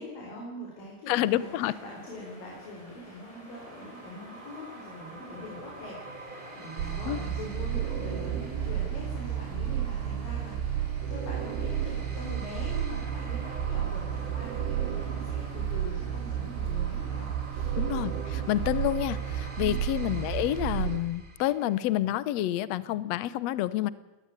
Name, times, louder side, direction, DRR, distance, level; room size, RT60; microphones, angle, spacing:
voice 1, 0.0-17.8 19.6-19.8, left 1 dB, 65° left, -2 dB, 6.5 m, -43 dB
voice 2, 1.1-1.7 7.1-7.2 17.8-23.9, left 14 dB, 85° left, 18 dB, 1.4 m, -28 dB
sound 1, 1.2-20.9, equal, 10° left, 7.3 m, -50 dB
sound 2, 3.2-21.9, right 3 dB, 25° right, 1.0 m, -48 dB
sound 3, 6.8-21.0, right 10 dB, 85° right, 3.2 m, -32 dB
20.0 x 19.5 x 9.7 m, 1.1 s
omnidirectional pair, 4.3 m